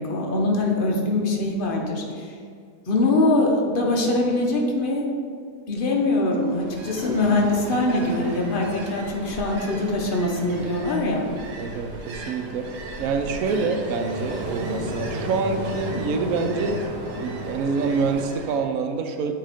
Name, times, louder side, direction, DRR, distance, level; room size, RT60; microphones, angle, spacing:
voice 1, 0.0-2.3 2.9-5.1 5.7-11.3, left 2 dB, 45° left, 0 dB, 0.7 m, -23 dB
Ocean, 6.4-18.6, right 1 dB, 85° right, 1.4 m, -34 dB
voice 2, 11.6-12.7 13.0-16.8 17.2-19.3, right 4 dB, 70° right, 5 dB, 0.9 m, -26 dB
7.7 x 2.9 x 5.0 m, 2.2 s
omnidirectional pair, 1.7 m